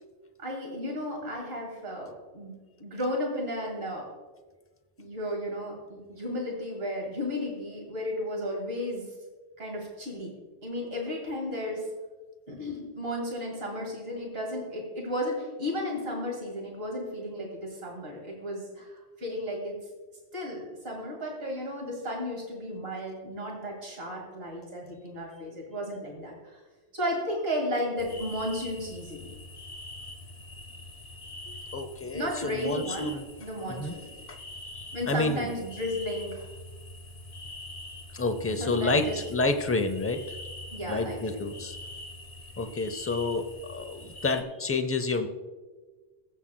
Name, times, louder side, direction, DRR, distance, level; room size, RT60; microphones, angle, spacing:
voice 1, 0.4-2.5 2.8-4.1 5.0-9.0 9.6-10.3 10.6-11.8 12.5-19.8 20.3-26.6 26.9-29.3 32.1-34.1 34.9-36.5 38.6-39.2 40.7-41.4, equal, 60° right, -1 dB, 2.4 m, -34 dB
sound 1, 28.0-44.4, left 1 dB, 50° left, 1.1 m, -44 dB
voice 2, 31.7-33.3 33.7-34.0 34.3-34.4 34.7-35.5 38.1-40.4 40.9-41.8 42.6-45.3, left 3 dB, 20° left, 8 dB, 0.4 m, -29 dB
21.5 x 7.4 x 2.2 m, 1.3 s
omnidirectional pair, 1.2 m